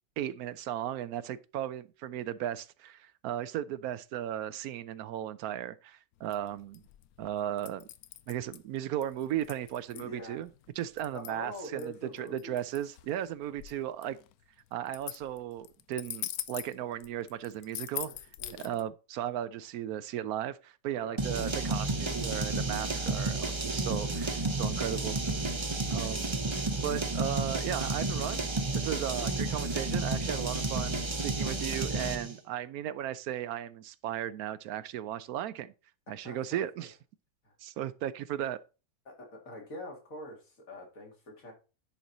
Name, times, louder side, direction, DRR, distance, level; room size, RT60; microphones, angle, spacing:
voice 1, 0.2-6.8 7.2-7.9 8.3-10.5 10.8-14.2 14.7-18.1 18.6-25.2 25.9-26.3 26.8-28.4 28.7-35.7 36.1-36.9 37.6-38.6, right 11 dB, 75° right, 1.0 m, -36 dB
sound 1, 6.2-18.8, left 12 dB, 80° left, 1.1 m, -43 dB
voice 2, 9.9-10.4 11.1-12.7 18.1-18.9 21.0-21.2 29.2-29.3 36.2-36.9 37.4-37.5 39.1-41.5, left 1 dB, 60° left, 2.6 m, -45 dB
sound 2, 21.2-32.3, right 2 dB, 25° right, 0.7 m, -31 dB
10.0 x 4.5 x 3.9 m
omnidirectional pair, 1.6 m